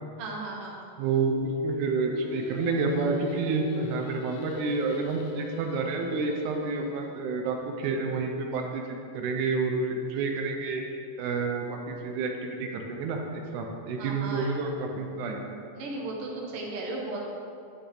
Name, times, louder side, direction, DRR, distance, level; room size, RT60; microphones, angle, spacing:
voice 1, 0.2-0.8 14.0-14.6 15.8-17.2, right 2 dB, 55° right, -2 dB, 2.0 m, -35 dB
voice 2, 1.0-10.8 11.2-15.5, right 3 dB, 85° right, 2 dB, 2.2 m, -29 dB
Singing, 2.1-7.2, left 6 dB, 80° left, 1.9 m, -42 dB
9.9 x 6.9 x 3.9 m, 2.5 s
omnidirectional pair, 3.4 m